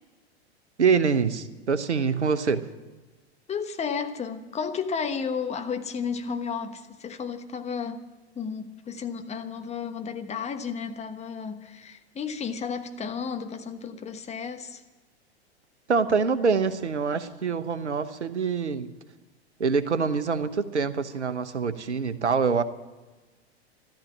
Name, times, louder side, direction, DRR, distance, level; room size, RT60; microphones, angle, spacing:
voice 1, 0.8-2.6 15.9-18.9 19.6-22.6, right 5 dB, 85° right, 12 dB, 1.0 m, -25 dB
voice 2, 3.5-8.1 8.3-14.8, left 6 dB, 20° left, 7 dB, 1.3 m, -33 dB
14.5 x 13.0 x 7.3 m, 1.2 s
figure-of-eight pair, 95°, 33 cm